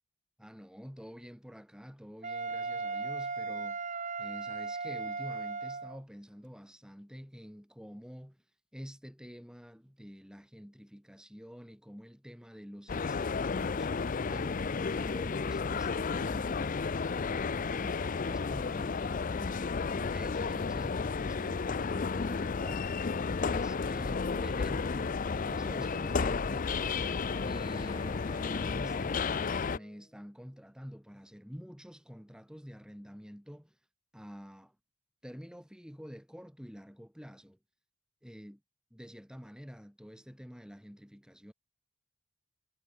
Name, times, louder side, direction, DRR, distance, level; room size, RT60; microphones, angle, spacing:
voice 1, 0.4-8.4 8.7-14.0 14.3-16.9 17.3-22.9 23.4-26.8 27.4-33.8 34.1-34.8 35.2-37.6 38.2-38.6 38.9-41.5, equal, 5° right, 6.8 m, -48 dB
Wind instrument woodwind instrument, 2.2-6.0, right 4 dB, 35° right, 4.8 m, -37 dB
sound 1, 12.9-29.8, left 5 dB, 35° left, 0.5 m, -32 dB
Wind instrument woodwind instrument 2, 25.9-30.1, left 1 dB, 15° left, 2.8 m, -49 dB
head